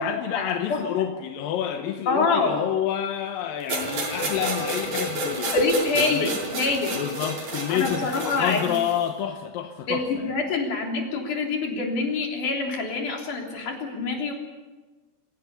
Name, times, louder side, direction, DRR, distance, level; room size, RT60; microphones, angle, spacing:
voice 1, 0.0-5.6 6.0-6.4 6.9-10.3, left 10 dB, 70° left, 5 dB, 2.4 m, -29 dB
voice 2, 2.1-2.6 5.5-7.0 7.7-8.8 9.9-14.3, left 3 dB, 50° left, 1 dB, 4.7 m, -25 dB
sound 1, 3.7-9.0, right 1 dB, 60° right, 7.1 m, -30 dB
27.5 x 16.5 x 6.9 m, 1.2 s
omnidirectional pair, 4.8 m